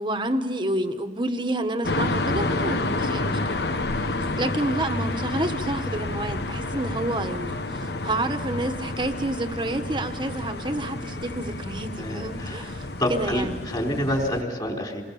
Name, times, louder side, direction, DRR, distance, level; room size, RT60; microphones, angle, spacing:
voice 1, 0.0-3.7 4.2-13.7, right 1 dB, 25° right, 7 dB, 1.4 m, -29 dB
sound 1, 1.8-14.4, left 2 dB, 60° left, 1.1 m, -29 dB
voice 2, 12.0-12.7 13.0-15.0, equal, 25° left, 1 dB, 3.8 m, -28 dB
28.5 x 22.0 x 7.1 m, 1.5 s
head